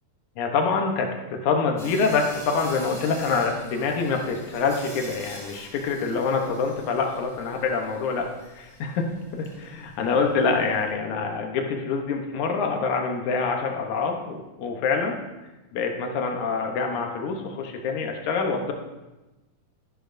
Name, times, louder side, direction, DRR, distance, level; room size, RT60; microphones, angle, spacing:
voice 1, 0.4-15.2 15.7-18.7, left 4 dB, 70° left, 3 dB, 2.3 m, -26 dB
Sawing, 1.8-10.9, equal, ahead, 2.7 m, -46 dB
12.5 x 11.5 x 2.6 m, 1.1 s
omnidirectional pair, 3.7 m